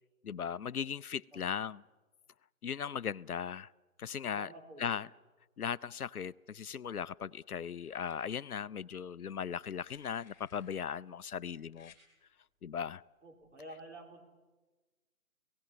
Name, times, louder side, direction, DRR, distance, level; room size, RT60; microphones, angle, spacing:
voice 1, 0.2-1.8 2.6-3.7 4.0-4.5 4.8-5.1 5.6-11.9 12.6-13.0, left 7 dB, 80° left, 0.6 m, -38 dB
voice 2, 4.2-5.0 13.2-14.2, right 1 dB, 50° right, 4.0 m, -50 dB
sound 1, 6.5-7.1 7.7-8.4 9.5-10.9 11.7-12.0 13.4-13.6, left 7 dB, 5° left, 2.5 m, -64 dB
29.0 x 17.5 x 7.5 m
figure-of-eight pair, 155°, 44 cm